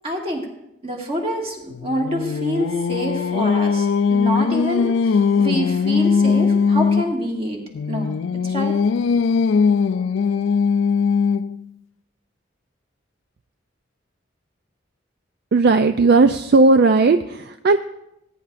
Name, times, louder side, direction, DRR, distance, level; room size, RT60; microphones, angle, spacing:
voice 1, 0.0-0.5 0.8-7.6 7.9-8.8, equal, 30° right, -1 dB, 2.0 m, -26 dB
Singing, 1.7-7.1 7.7-11.6, left 5 dB, 75° left, 0.3 m, -20 dB
voice 2, 15.5-17.8, right 3 dB, 55° right, 9 dB, 0.4 m, -15 dB
19.5 x 10.0 x 2.5 m, 0.85 s
head